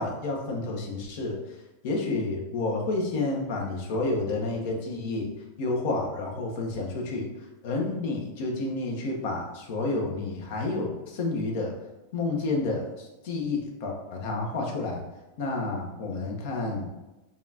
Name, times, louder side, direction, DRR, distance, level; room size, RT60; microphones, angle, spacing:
voice 1, 0.0-1.6 1.8-5.3 5.6-7.3 7.6-11.7 12.1-15.0 15.4-16.9, left 2 dB, 65° left, 0 dB, 1.0 m, -30 dB
5.5 x 2.5 x 2.8 m, 1.0 s
hypercardioid pair, 110°, 0 cm